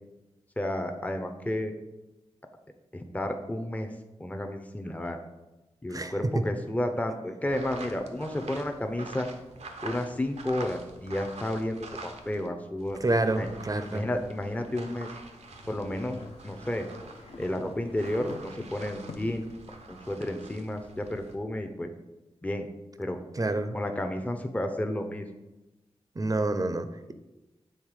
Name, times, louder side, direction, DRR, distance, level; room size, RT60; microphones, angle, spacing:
voice 1, 0.6-1.7 2.9-3.9 4.2-5.2 5.8-9.3 9.8-13.0 13.3-13.5 13.9-15.1 15.7-16.2 16.4-16.9 17.4-19.5 19.9-21.9 22.4-22.7 23.0-23.2 23.7-25.3, left 1 dB, 15° left, 5 dB, 0.6 m, -31 dB
voice 2, 5.9-6.5 13.0-14.1 23.3-23.8 26.2-27.1, right 2 dB, 35° right, 9 dB, 0.5 m, -28 dB
sound 1, 7.5-12.5 12.8-21.3, right 3 dB, 85° right, 0.7 m, -46 dB
sound 2, 15.5-19.5, left 3 dB, 60° left, 0.6 m, -47 dB
6.5 x 3.3 x 4.8 m, 1.0 s
cardioid pair, 50°, 11 cm